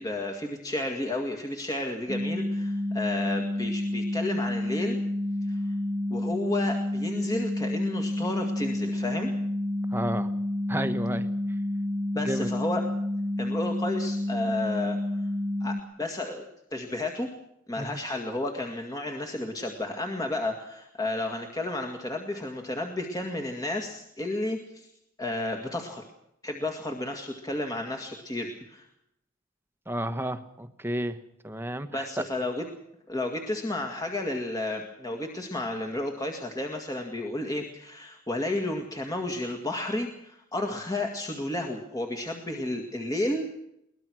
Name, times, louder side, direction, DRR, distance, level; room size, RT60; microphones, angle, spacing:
voice 1, 0.0-5.0 5.5-5.6 6.1-9.3 12.1-12.8 13.4-15.0 15.6-17.3 17.7-24.9 25.2-26.0 26.4-28.9 31.9-32.7 33.1-43.5, left 2 dB, 20° left, 2 dB, 2.0 m, -32 dB
sound 1, 2.1-15.8, left 1 dB, 30° right, 1.4 m, -29 dB
voice 2, 9.9-10.3 10.7-11.3 12.2-12.5 17.8-18.0 29.9-31.2 31.4-32.1, right 1 dB, 10° right, 8 dB, 1.3 m, -31 dB
23.0 x 19.0 x 6.3 m, 0.78 s
head